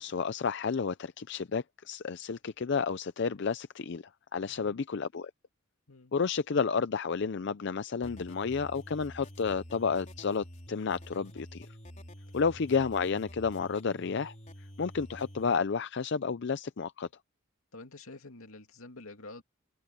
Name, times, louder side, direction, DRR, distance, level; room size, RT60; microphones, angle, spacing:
voice 1, 0.0-4.0 4.3-5.3 6.1-11.7 12.3-14.3 14.8-17.1, left 5 dB, 55° left, 0.5 m, -31 dB
sound 1, 8.0-15.6, equal, 35° left, 4.0 m, -48 dB
voice 2, 12.3-12.7 17.7-19.4, left 2 dB, 85° left, 2.5 m, -48 dB
head